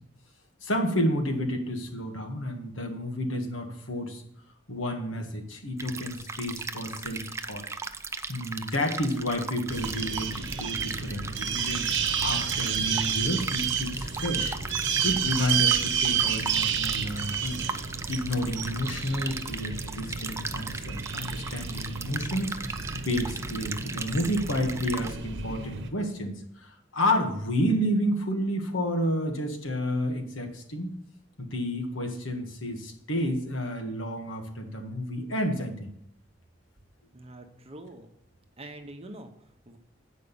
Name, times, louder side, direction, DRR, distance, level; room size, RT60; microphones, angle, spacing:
voice 1, 0.6-4.2 4.7-7.6 8.3-14.6 15.0-17.6 18.1-31.0 31.4-35.9, equal, 85° left, 3 dB, 1.7 m, -30 dB
sound 1, 5.8-25.2, right 4 dB, 15° right, 0.5 m, -37 dB
sound 2, 9.7-25.9, right 7 dB, 65° right, 1.0 m, -31 dB
voice 2, 37.1-38.1 38.6-39.8, right 1 dB, 30° right, 6 dB, 1.0 m, -45 dB
8.3 x 5.1 x 7.1 m, 0.72 s
head